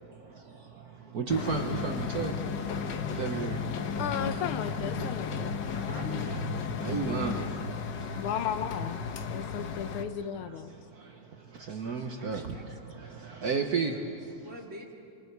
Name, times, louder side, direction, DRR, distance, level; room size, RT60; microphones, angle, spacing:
voice 1, 1.1-2.3 3.2-3.6 6.8-7.4 11.7-12.4 13.4-13.9, right 5 dB, 50° right, 4 dB, 1.4 m, -31 dB
sound 1, 1.3-10.0, left 5 dB, 60° left, 1.5 m, -34 dB
voice 2, 4.0-5.5 8.1-10.7, left 8 dB, 80° left, 10 dB, 1.8 m, -35 dB
voice 3, 5.8-6.7 12.2-12.7 14.4-14.9, right 1 dB, 35° right, 0 dB, 2.5 m, -45 dB
27.0 x 26.0 x 4.7 m, 2.4 s
omnidirectional pair, 2.3 m